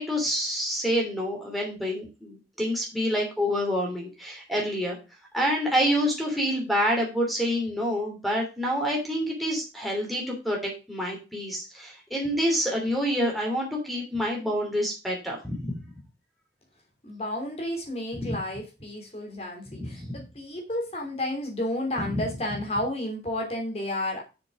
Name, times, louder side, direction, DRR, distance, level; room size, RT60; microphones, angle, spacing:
voice 1, 0.0-5.0 5.3-15.7 18.1-18.3 19.9-20.2, equal, ahead, -1 dB, 3.0 m, -27 dB
voice 2, 17.0-24.2, left 1 dB, 35° left, 1 dB, 3.1 m, -31 dB
6.9 x 6.8 x 4.9 m, 0.29 s
head